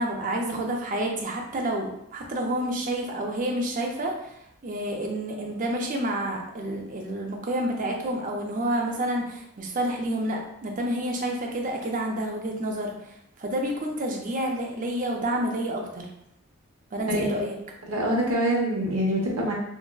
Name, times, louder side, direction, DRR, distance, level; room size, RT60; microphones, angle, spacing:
voice 1, 0.0-4.1 4.6-16.1 16.9-17.5, right 1 dB, 35° right, 1 dB, 0.4 m, -29 dB
voice 2, 17.8-19.5, right 1 dB, 80° right, -2 dB, 0.8 m, -25 dB
3.7 x 2.1 x 2.2 m, 0.77 s
head